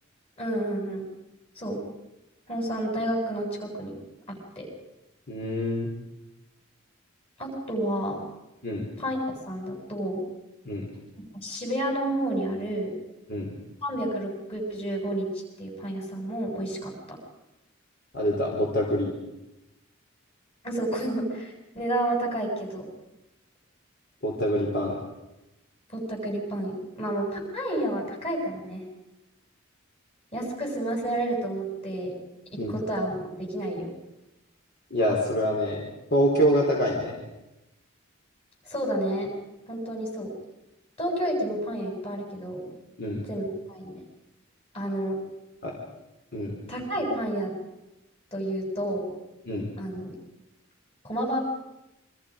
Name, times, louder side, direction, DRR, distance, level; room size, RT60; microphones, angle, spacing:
voice 1, 0.4-1.1 1.6-1.8 2.5-4.0 4.3-4.7 7.4-8.2 9.0-9.2 9.5-10.2 11.4-12.9 13.8-15.3 15.6-17.2 20.6-22.9 25.9-28.8 30.3-32.1 32.5-33.9 38.6-39.3 39.7-40.3 41.0-42.7 43.3-43.9 44.7-45.2 46.7-47.5 48.3-49.1 49.8-50.1 51.0-51.4, right 1 dB, 30° left, 1 dB, 7.9 m, -30 dB
voice 2, 5.3-5.9 8.6-8.9 10.6-10.9 13.3-13.5 18.1-19.2 24.2-25.0 32.6-32.7 34.9-35.8 36.1-37.2 43.0-43.2 45.6-45.7 46.3-46.6 49.4-49.6, equal, 50° left, -2 dB, 4.4 m, -25 dB
29.0 x 25.0 x 5.3 m, 0.94 s
head